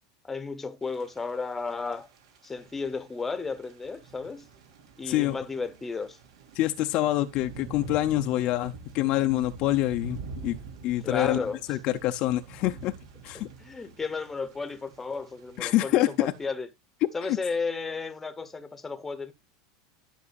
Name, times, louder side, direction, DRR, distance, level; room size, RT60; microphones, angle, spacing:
voice 1, 0.2-2.1 2.4-4.4 5.0-6.2 11.0-11.6 13.3-16.7 17.1-19.3, left 4 dB, 10° left, 1.0 m, -33 dB
Thunder / Rain, 0.8-16.5, right 4 dB, 80° right, 3.4 m, -47 dB
voice 2, 5.1-5.4 6.5-10.2 10.4-10.6 10.8-12.9 13.2-13.5 15.6-16.3, left 15 dB, 40° left, 0.6 m, -26 dB
12.5 x 6.2 x 2.4 m
supercardioid pair, 160°, 2 cm